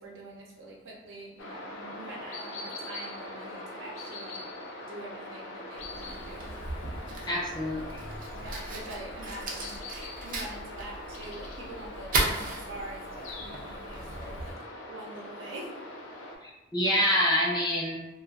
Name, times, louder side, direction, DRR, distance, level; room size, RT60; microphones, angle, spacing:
voice 1, 0.0-4.5 4.8-6.5 8.3-10.0 10.2-14.6 14.9-15.8, right 2 dB, 90° right, -3 dB, 0.7 m, -45 dB
sound 1, 1.4-16.4, left 1 dB, 75° left, 0.5 m, -42 dB
Fire, 5.8-14.5, right 2 dB, 45° right, 0.4 m, -36 dB
voice 2, 7.3-8.0 16.4-18.1, equal, 20° left, -5 dB, 0.5 m, -27 dB
2.4 x 2.2 x 2.3 m, 1.1 s
head